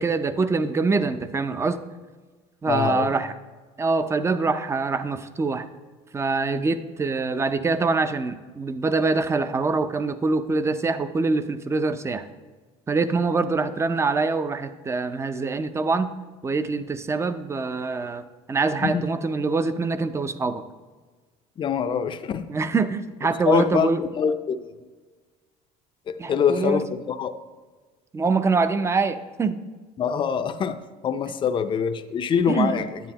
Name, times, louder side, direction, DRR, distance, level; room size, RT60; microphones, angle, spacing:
voice 1, 0.0-1.8 2.6-3.3 3.8-5.7 6.1-12.3 12.9-16.1 16.4-20.6 22.5-24.0 26.2-26.8 28.1-29.6 32.5-32.8, right 4 dB, 20° right, 12 dB, 0.5 m, -24 dB
voice 2, 2.7-3.2 18.8-19.1 21.6-22.5 23.5-24.7 26.1-27.3 30.0-33.0, left 7 dB, 35° left, 9 dB, 0.5 m, -24 dB
9.5 x 9.3 x 2.9 m, 1.3 s
cardioid pair, 115°, 15 cm